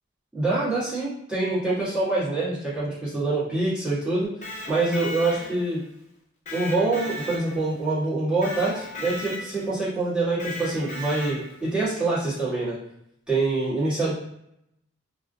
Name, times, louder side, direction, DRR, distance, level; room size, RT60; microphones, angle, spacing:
voice 1, 0.3-4.3 4.7-5.8 6.5-12.8 13.3-14.1, right 2 dB, 5° right, -13 dB, 1.1 m, -25 dB
Electric guitar, 4.2-5.8 6.5-7.8 8.4-9.7 10.4-11.6, left 2 dB, 35° left, 0.4 m, -36 dB
2.3 x 2.1 x 2.5 m, 0.77 s
head